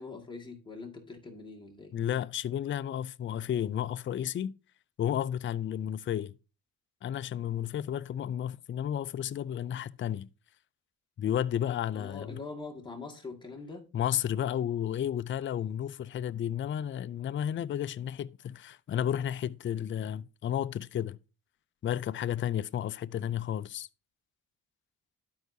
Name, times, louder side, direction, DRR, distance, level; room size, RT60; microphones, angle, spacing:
voice 1, 0.0-1.9 11.9-13.8, left 3 dB, 10° left, 1.9 m, -43 dB
voice 2, 1.9-4.5 5.0-6.3 7.0-10.3 11.2-12.4 13.9-21.2 21.8-23.9, left 10 dB, 30° left, 0.4 m, -32 dB
12.5 x 4.6 x 2.7 m
supercardioid pair, 65°, 39 cm